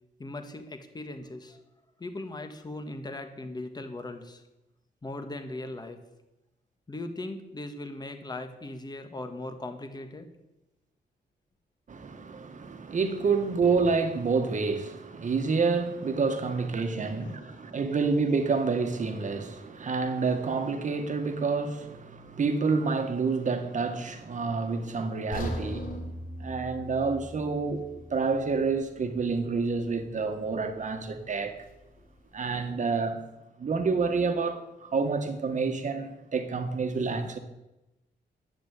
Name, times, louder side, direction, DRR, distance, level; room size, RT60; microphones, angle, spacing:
voice 1, 0.2-1.6 2.0-4.4 5.0-6.0 6.9-10.3 17.4-17.8, left 2 dB, 20° left, 1.6 m, -39 dB
voice 2, 11.9-26.1 26.4-31.6 32.3-33.2 33.6-37.4, right 4 dB, 45° right, 1.7 m, -28 dB
sound 1, 25.3-29.4 29.7-29.9 30.5-30.6, left 1 dB, 50° left, 3.2 m, -39 dB
12.0 x 8.9 x 8.5 m
wide cardioid pair, 150°, 18 cm